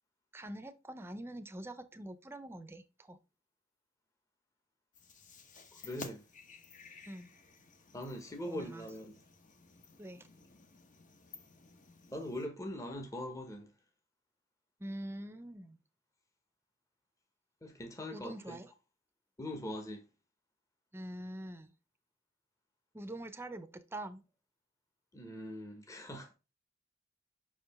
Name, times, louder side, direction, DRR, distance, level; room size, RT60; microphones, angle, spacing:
voice 1, 0.3-3.2 7.0-7.4 8.5-8.9 10.0-10.3 14.8-15.8 18.1-18.7 20.9-21.7 22.9-24.2, right 1 dB, 15° right, 0.7 m, -45 dB
sound 1, 4.9-12.5, left 4 dB, 40° left, 1.2 m, -54 dB
voice 2, 5.7-6.2 7.9-9.1 12.1-13.7 17.6-18.6 19.4-20.1 25.1-26.3, left 1 dB, 15° left, 1.1 m, -42 dB
6.1 x 4.9 x 3.5 m
head